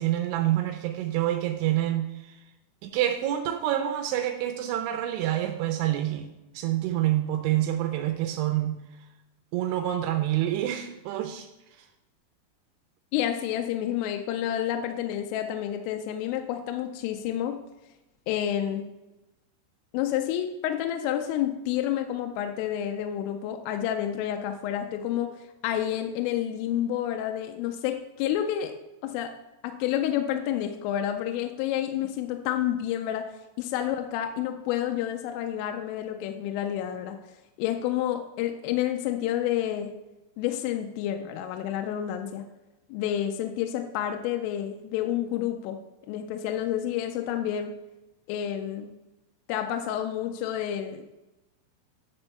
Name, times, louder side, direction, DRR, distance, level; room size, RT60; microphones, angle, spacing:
voice 1, 0.0-2.4 2.8-8.8 9.5-11.5 11.8-11.9, right 13 dB, 80° right, 5 dB, 2.8 m, -27 dB
voice 2, 13.1-17.6 18.3-18.9 19.9-28.7 29.0-29.3 29.6-33.3 33.6-37.2 37.6-39.9 40.4-42.4 42.9-45.8 46.1-47.7 48.3-48.9 49.5-51.2, left 11 dB, 85° left, 5 dB, 3.1 m, -29 dB
10.5 x 4.4 x 6.6 m, 1.0 s
omnidirectional pair, 6.0 m